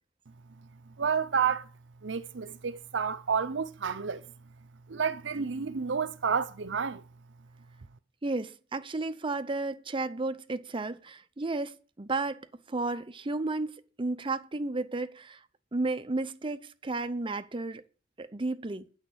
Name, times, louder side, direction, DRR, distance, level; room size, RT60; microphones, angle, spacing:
voice 1, 1.0-1.7 2.0-4.3 4.9-7.0, right 6 dB, 70° right, 0.7 m, -30 dB
voice 2, 8.2-15.4 15.7-17.8 18.2-18.8, right 2 dB, 30° right, 0.7 m, -33 dB
9.2 x 6.5 x 7.9 m
head